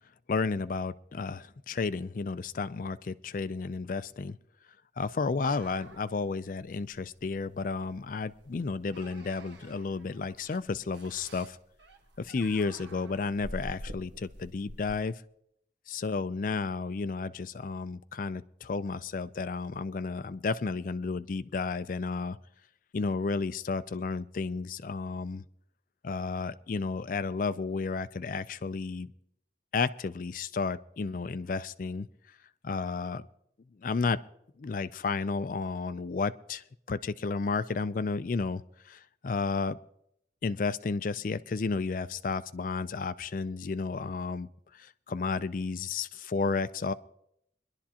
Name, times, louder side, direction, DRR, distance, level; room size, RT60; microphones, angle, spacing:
voice 1, 0.3-4.4 5.0-11.6 12.2-15.2 15.9-22.4 22.9-25.4 26.0-29.1 29.7-32.1 32.6-33.3 33.8-34.2 34.6-39.8 40.4-46.9, left 4 dB, 45° left, 15 dB, 0.4 m, -32 dB
sound 1, 5.4-15.0, equal, 75° right, 1.3 m, -48 dB
22.5 x 11.5 x 2.9 m, 0.73 s
head